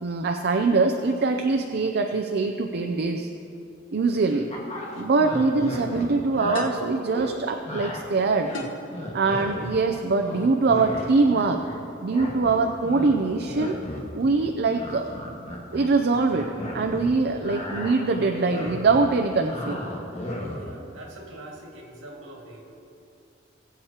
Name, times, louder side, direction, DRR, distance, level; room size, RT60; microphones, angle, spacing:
voice 1, 0.0-3.3 3.9-4.4 5.0-8.5 9.1-11.6 12.0-13.7 14.1-15.1 15.7-19.8, right 3 dB, 55° right, 5 dB, 0.5 m, -23 dB
voice 2, 4.1-4.5 20.5-22.6, right 1 dB, 75° right, -1 dB, 2.1 m, -43 dB
sound 1, 4.5-6.6 7.1-7.3 7.7-8.0 8.4-9.9 10.2-11.8 12.1-17.1 17.4-20.7, left 1 dB, 35° left, 1.6 m, -35 dB
sound 2, 4.9-5.1 6.5-7.0 8.5-8.9, left 2 dB, 65° left, 1.3 m, -34 dB
20.0 x 8.1 x 2.9 m, 2.6 s
head